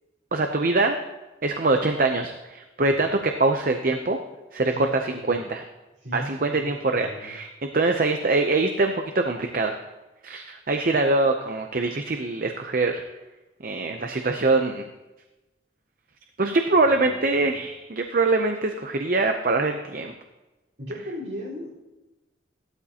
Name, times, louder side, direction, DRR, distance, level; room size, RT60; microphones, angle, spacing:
voice 1, 0.3-1.0 1.4-4.2 4.5-4.7 5.0-5.6 6.1-7.5 7.7-9.8 10.2-13.0 13.6-14.9 16.4-20.1, right 3 dB, 45° right, 5 dB, 0.6 m, -23 dB
voice 2, 4.7-5.4 6.0-7.4 16.9-17.6 20.8-21.8, equal, 65° right, -5 dB, 4.4 m, -38 dB
15.0 x 12.5 x 2.9 m, 1.1 s
head